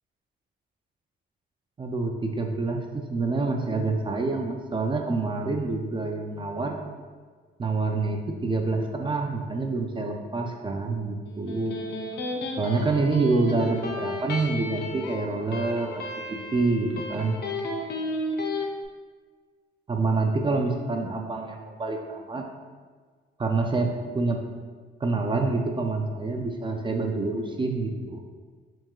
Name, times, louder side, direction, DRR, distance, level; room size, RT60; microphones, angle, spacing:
voice 1, 1.8-6.8 7.6-11.8 12.6-16.0 16.5-17.4 19.9-22.4 23.4-24.4 25.0-28.2, right 3 dB, 25° right, 3 dB, 0.4 m, -27 dB
Electric guitar, 11.3-18.7, left 1 dB, 60° left, 0.6 m, -33 dB
4.5 x 3.5 x 2.3 m, 1.5 s
cardioid pair, 90°, 20 cm